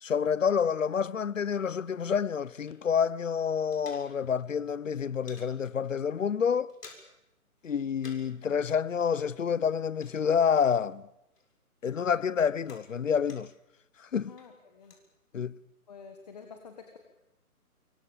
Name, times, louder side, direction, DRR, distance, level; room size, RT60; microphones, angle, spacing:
voice 1, 0.0-6.7 7.6-11.0 11.8-13.5 14.0-14.3 15.3-15.5, left 7 dB, 55° left, 0.8 m, -28 dB
sound 1, 1.8-3.1 3.4-4.5 4.8-5.5 6.0-6.1 6.4-7.3 7.6-8.4 8.7-11.0 11.3-13.7 14.1-15.0, left 3 dB, 90° left, 6.9 m, -55 dB
voice 2, 14.3-14.9 15.9-17.0, left 5 dB, 25° left, 1.7 m, -48 dB
26.0 x 23.5 x 7.3 m
hypercardioid pair, 175°, 45 cm